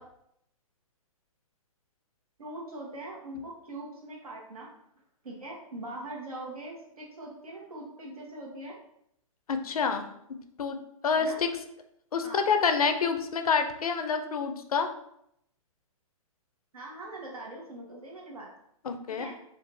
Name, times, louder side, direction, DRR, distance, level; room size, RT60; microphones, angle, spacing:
voice 1, 2.4-4.7 5.2-8.8 11.2-11.4 12.2-12.5 16.7-18.5 19.1-19.4, right 1 dB, 90° right, -2 dB, 1.2 m, -42 dB
voice 2, 9.5-10.1 10.6-10.8 11.0-11.5 12.1-14.9 18.8-19.2, left 5 dB, 90° left, 7 dB, 0.5 m, -27 dB
3.7 x 2.5 x 2.6 m, 0.74 s
hypercardioid pair, 140°, 18 cm